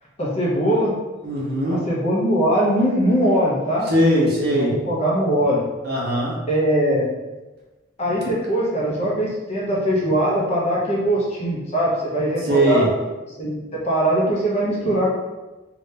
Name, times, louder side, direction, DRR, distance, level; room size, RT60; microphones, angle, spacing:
voice 1, 0.2-0.9 1.9-3.9 4.6-5.6 6.5-7.1 8.0-12.8 13.4-15.1, right 1 dB, 35° left, -6 dB, 0.8 m, -21 dB
voice 2, 1.2-1.8 3.9-4.8 5.8-6.4 12.4-12.9, equal, 55° right, -5 dB, 0.9 m, -20 dB
2.8 x 2.5 x 3.3 m, 1.2 s
head